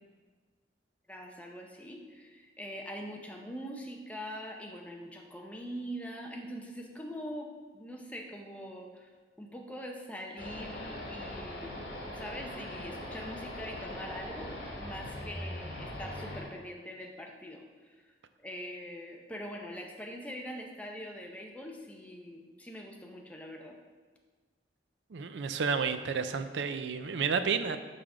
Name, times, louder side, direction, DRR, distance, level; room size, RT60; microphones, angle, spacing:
voice 1, 1.1-9.1 9.4-18.0 18.4-23.8, equal, 10° left, 1 dB, 0.6 m, -43 dB
sound 1, 10.4-16.4, left 1 dB, 70° left, 1.4 m, -41 dB
voice 2, 25.1-27.8, right 5 dB, 90° right, 10 dB, 0.4 m, -31 dB
5.7 x 5.1 x 4.8 m, 1.5 s
head